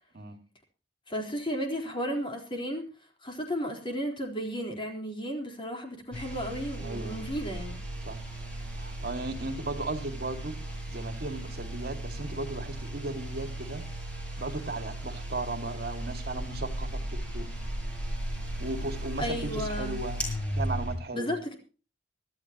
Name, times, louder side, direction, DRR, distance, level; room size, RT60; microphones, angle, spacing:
voice 1, 1.1-2.9 3.2-7.8 19.2-19.9 21.1-21.5, equal, 30° left, 1 dB, 4.1 m, -33 dB
sound 1, 6.1-21.0, right 1 dB, 5° left, 7.4 m, -36 dB
voice 2, 6.8-7.3 8.0-8.2 8.8-13.8 14.1-17.5 18.6-20.2 20.5-21.4, right 2 dB, 60° right, 6 dB, 2.2 m, -36 dB
25.0 x 13.0 x 3.0 m, 0.35 s
head